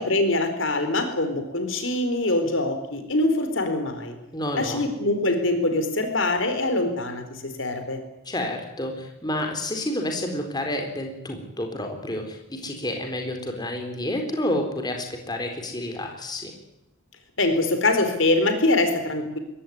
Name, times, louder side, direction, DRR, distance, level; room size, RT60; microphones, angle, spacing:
voice 1, 0.0-4.1 4.5-8.0 17.4-19.4, left 2 dB, 60° left, 7 dB, 4.4 m, -24 dB
voice 2, 4.3-4.8 8.3-16.5, left 1 dB, 20° left, 3 dB, 4.1 m, -29 dB
22.0 x 17.5 x 9.6 m, 0.91 s
head